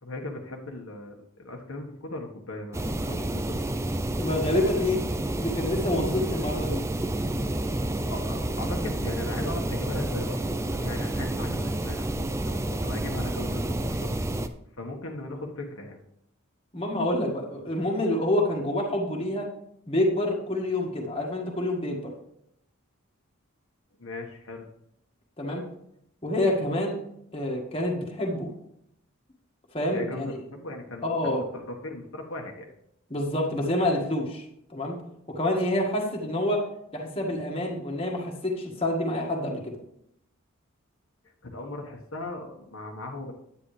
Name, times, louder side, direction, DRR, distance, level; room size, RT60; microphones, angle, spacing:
voice 1, 0.0-3.7 8.1-14.1 14.8-16.0 24.0-24.7 29.9-32.7 41.5-43.3, left 2 dB, 70° left, 1 dB, 1.4 m, -38 dB
sound 1, 2.7-14.5, right 1 dB, 15° right, 0.4 m, -29 dB
voice 2, 4.2-5.0 5.4-6.8 16.7-19.5 19.9-22.1 25.4-25.6 26.2-27.0 27.3-28.5 29.7-30.4 31.0-31.4 33.1-34.4 34.7-34.9 35.3-36.6 36.9-39.7, left 1 dB, 25° left, -1 dB, 1.7 m, -27 dB
10.0 x 9.3 x 3.3 m, 0.75 s
head